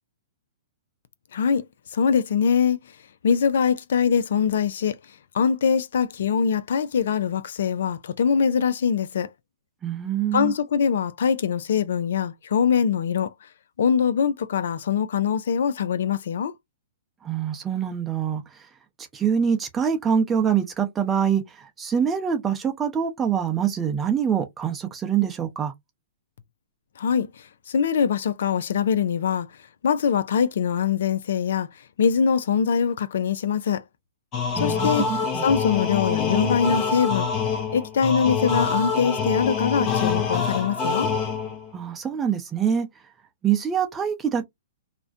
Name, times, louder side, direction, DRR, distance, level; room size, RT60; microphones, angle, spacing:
voice 1, 1.3-1.6 1.9-2.8 3.2-5.0 5.3-9.3 10.3-13.3 13.8-16.5 27.0-29.5 29.8-31.7 32.0-33.8 34.6-35.1 35.4-37.3 37.7-41.1, left 7 dB, 65° left, 0.3 m, -23 dB
voice 2, 9.8-10.5 17.2-18.4 19.1-25.7 34.6-35.4 41.7-42.9 43.4-44.4, right 8 dB, 20° right, 0.6 m, -25 dB
sound 1, 34.3-41.7, left 5 dB, 30° left, 0.6 m, -25 dB
2.4 x 2.1 x 2.4 m
hypercardioid pair, 120°, 0 cm